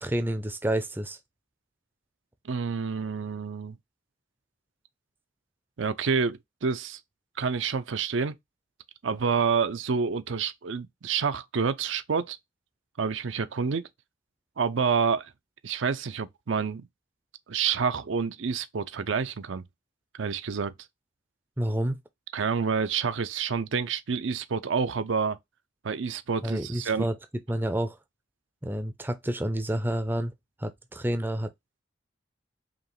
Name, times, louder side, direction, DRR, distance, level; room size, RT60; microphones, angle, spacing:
voice 1, 0.0-1.2 21.6-22.0 26.4-27.1 27.5-28.0 28.6-30.3 30.6-31.5, right 1 dB, 10° right, 0.5 m, -29 dB
voice 2, 2.4-3.8 5.8-7.0 7.4-8.3 9.0-12.4 13.0-13.9 14.6-15.3 15.6-16.8 17.5-19.7 20.1-20.7 22.3-25.4 25.8-27.1, right 5 dB, 75° right, 0.5 m, -28 dB
5.0 x 2.9 x 3.1 m
head